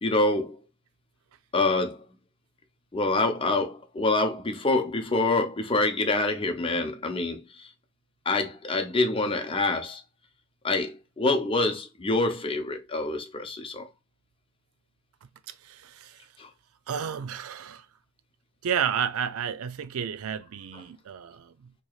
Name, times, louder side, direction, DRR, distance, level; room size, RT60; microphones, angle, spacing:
voice 1, 0.0-0.6 1.5-2.1 2.9-7.7 8.3-10.0 10.6-13.9 16.4-16.5, left 2 dB, 25° left, 0.6 m, -26 dB
voice 2, 15.5-16.3 16.9-17.9 18.6-21.7, right 8 dB, 80° right, 0.4 m, -32 dB
4.6 x 2.9 x 2.3 m
head